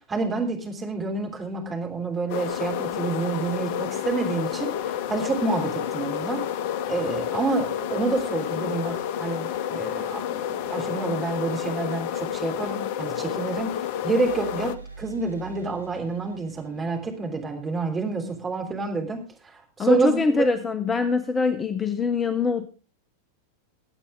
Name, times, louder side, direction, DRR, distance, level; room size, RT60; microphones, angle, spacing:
voice 1, 0.1-6.4 6.9-13.7 14.0-20.4, right 3 dB, 20° right, 2 dB, 3.4 m, -28 dB
sound 1, 2.3-14.8, left 10 dB, 50° left, 0.5 m, -30 dB
sound 2, 14.2-18.0, right 4 dB, 80° left, 2.7 m, -45 dB
voice 2, 19.8-22.7, left 4 dB, 15° left, 11 dB, 0.9 m, -23 dB
22.0 x 8.4 x 3.6 m, 0.33 s
figure-of-eight pair, 90°, 0 cm